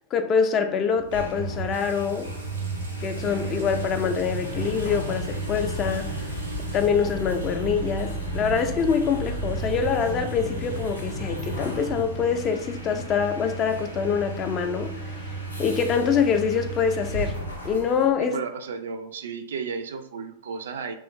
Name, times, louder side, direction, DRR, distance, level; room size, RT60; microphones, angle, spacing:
voice 1, 0.1-2.3 3.0-6.2 6.7-17.4 17.6-18.4, left 6 dB, 30° left, 0.4 m, -25 dB
sound 1, 1.0-18.1, right 1 dB, 85° left, 0.7 m, -33 dB
sound 2, 1.7-6.9, right 1 dB, 80° right, 0.7 m, -47 dB
voice 2, 18.2-20.9, right 5 dB, 65° right, 0.3 m, -33 dB
3.0 x 2.3 x 3.0 m
figure-of-eight pair, 90°, 0 cm